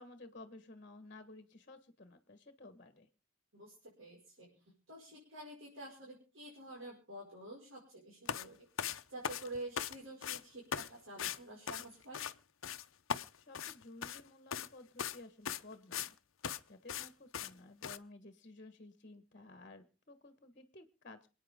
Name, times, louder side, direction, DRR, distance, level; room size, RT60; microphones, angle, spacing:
voice 1, 0.0-3.1 13.5-16.1 16.7-21.3, left 2 dB, 40° left, 9 dB, 1.4 m, -54 dB
voice 2, 3.5-12.2, right 1 dB, 75° right, -2 dB, 5.6 m, -49 dB
sound 1, 8.3-8.5 8.8-10.0 10.2-10.4 10.7-10.9 11.2-11.4 11.7-12.3 12.6-12.8 13.1-14.2 14.5-14.7 15.0-15.2 15.5-16.1 16.4-16.6 16.9-17.1 17.3-17.5 17.8-18.0, left 8 dB, 85° left, 0.8 m, -39 dB
27.0 x 9.3 x 3.7 m, 0.34 s
head